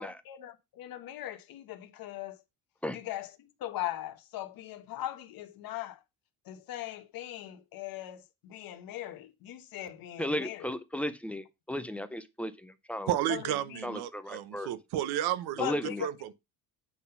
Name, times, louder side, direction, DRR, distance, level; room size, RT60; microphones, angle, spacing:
voice 1, 0.0-2.4 2.9-6.0 6.5-10.7 13.3-13.8 15.6-16.1, left 12 dB, 65° left, 1.0 m, -39 dB
voice 2, 10.2-13.2 13.8-14.7 15.6-16.0, left 1 dB, 5° left, 0.4 m, -35 dB
voice 3, 13.1-15.7 16.0-16.3, right 12 dB, 85° right, 0.8 m, -32 dB
8.5 x 3.8 x 5.5 m
cardioid pair, 175°, 37 cm